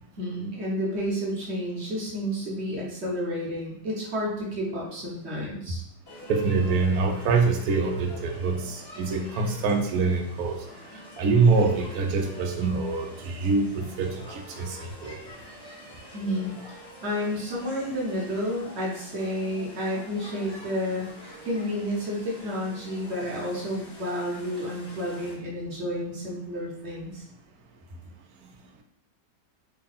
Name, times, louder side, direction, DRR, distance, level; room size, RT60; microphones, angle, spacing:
voice 1, 0.2-5.8 16.1-21.1 21.4-27.2, equal, 45° right, -4 dB, 1.0 m, -31 dB
sound 1, 6.1-25.3, left 1 dB, 15° left, 1.0 m, -45 dB
voice 2, 6.3-10.6 11.2-15.2, right 4 dB, 70° right, 3 dB, 1.0 m, -25 dB
3.5 x 2.3 x 3.9 m, 0.68 s
omnidirectional pair, 1.9 m